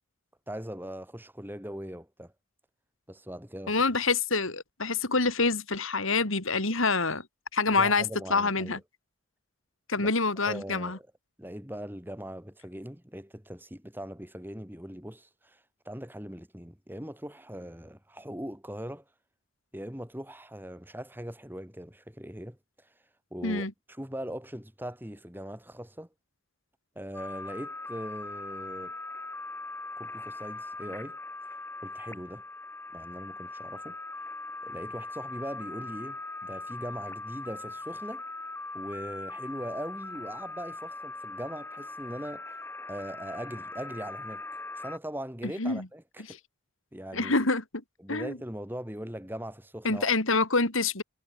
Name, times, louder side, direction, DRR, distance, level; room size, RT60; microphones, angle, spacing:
voice 1, 0.5-2.3 3.1-3.8 7.7-8.8 10.0-10.1 10.5-11.1 11.4-19.0 19.7-22.9 23.3-26.1 27.0-29.0 30.0-31.2 31.8-32.4 32.9-34.0 34.6-38.2 38.7-42.6 42.9-44.4 44.8-46.4 46.9-47.4 48.0-50.1, equal, 10° right, 3.5 m, -40 dB
voice 2, 3.7-7.3 7.5-8.8 9.9-11.0 23.4-23.7 45.6-45.9 47.1-47.6 48.1-48.4 49.8-51.0, left 3 dB, 75° left, 3.4 m, -26 dB
sound 1, 27.1-45.0, left 2 dB, 10° left, 1.9 m, -40 dB
head